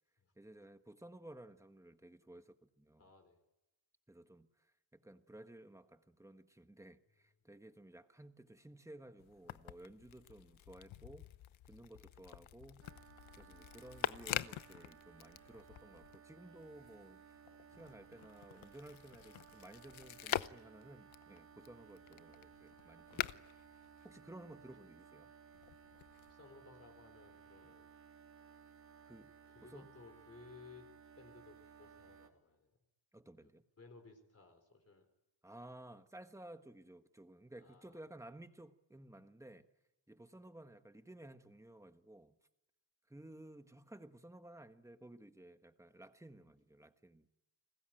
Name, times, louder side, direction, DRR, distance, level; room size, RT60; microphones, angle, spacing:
voice 1, 0.4-3.0 4.1-4.5 4.9-11.3 11.7-12.8 13.4-17.2 17.7-23.4 24.0-25.3 27.6-27.7 29.0-29.3 29.7-29.9 33.1-33.6 35.4-39.7 40.1-42.3 43.1-47.3, right 1 dB, 5° right, 1.4 m, -55 dB
voice 2, 3.0-3.4 11.9-12.4 26.2-27.9 29.4-30.9 31.1-32.7 33.4-35.1 35.5-35.6 37.6-38.0, left 4 dB, 30° left, 4.1 m, -59 dB
sound 1, 9.2-16.2 16.6-24.7 25.5-26.3, left 12 dB, 75° left, 0.9 m, -46 dB
sound 2, 12.8-32.3, right 7 dB, 35° right, 4.0 m, -60 dB
30.0 x 21.0 x 9.0 m
wide cardioid pair, 135°, 47 cm